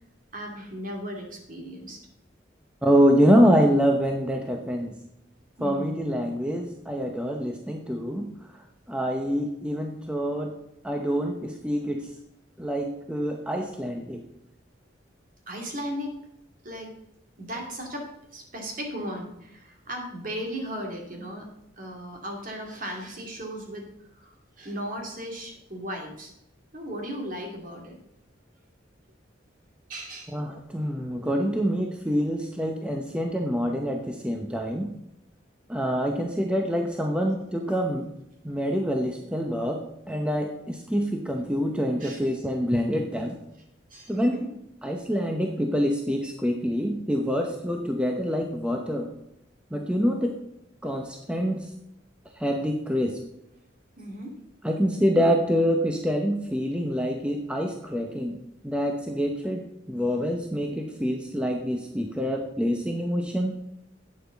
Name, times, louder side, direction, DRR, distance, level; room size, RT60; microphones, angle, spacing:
voice 1, 0.3-2.0 5.6-6.0 15.5-16.1 16.6-16.9 17.4-21.5 21.8-26.3 26.7-28.0 29.9-30.4 42.0-42.2 43.9-44.5 54.0-54.3, equal, 45° right, 1 dB, 2.6 m, -36 dB
voice 2, 2.8-5.0 5.6-10.6 10.8-12.1 12.6-14.3 30.3-34.9 35.7-38.1 38.4-43.4 44.1-44.4 44.8-49.1 49.7-50.4 50.8-51.7 52.3-53.2 54.6-58.4 58.6-63.5, equal, 5° right, 2 dB, 0.7 m, -26 dB
11.5 x 8.6 x 3.9 m, 0.84 s
head